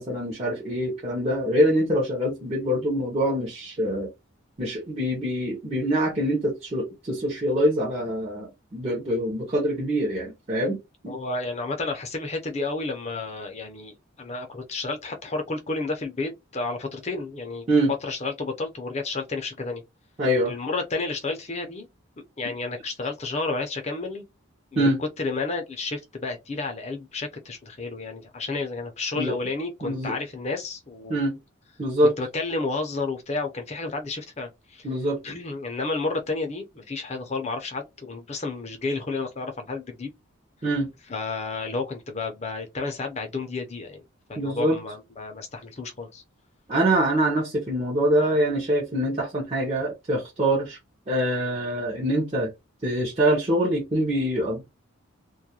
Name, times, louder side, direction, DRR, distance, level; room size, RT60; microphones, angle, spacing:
voice 1, 0.0-4.1 4.6-10.8 11.0-11.1 17.7-17.9 20.2-20.5 24.7-25.0 29.2-29.4 29.8-30.1 31.1-31.4 31.8-32.1 34.8-35.2 40.6-40.9 44.4-44.8 46.7-50.8 51.1-52.5 52.8-54.6, right 1 dB, 30° right, 0.7 m, -24 dB
voice 2, 11.1-17.7 18.0-19.8 20.4-21.9 22.4-24.3 24.7-24.9 25.2-31.2 32.0-34.9 35.2-40.1 41.1-44.0 44.3-46.2, left 3 dB, 30° left, 0.5 m, -31 dB
2.3 x 2.1 x 2.8 m
head